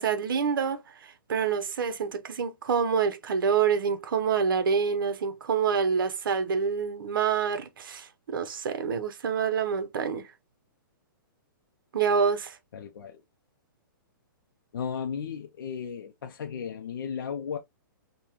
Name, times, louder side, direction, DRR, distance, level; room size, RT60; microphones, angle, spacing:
voice 1, 0.0-10.3 11.9-12.6, right 6 dB, 70° right, 0.9 m, -27 dB
voice 2, 12.7-13.2 14.7-17.6, left 7 dB, 80° left, 0.6 m, -35 dB
5.3 x 2.3 x 2.9 m
hypercardioid pair, 165°, 12 cm